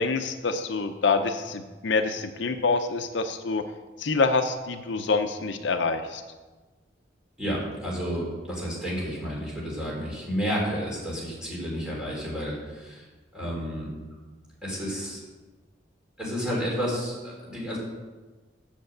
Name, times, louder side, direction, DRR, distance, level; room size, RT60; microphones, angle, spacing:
voice 1, 0.0-3.7 4.0-6.2, left 4 dB, 70° left, 8 dB, 0.6 m, -26 dB
voice 2, 7.4-13.0 13.3-13.9 14.6-15.2 16.2-17.8, equal, 5° right, -5 dB, 3.5 m, -31 dB
7.9 x 6.8 x 7.8 m, 1.3 s
head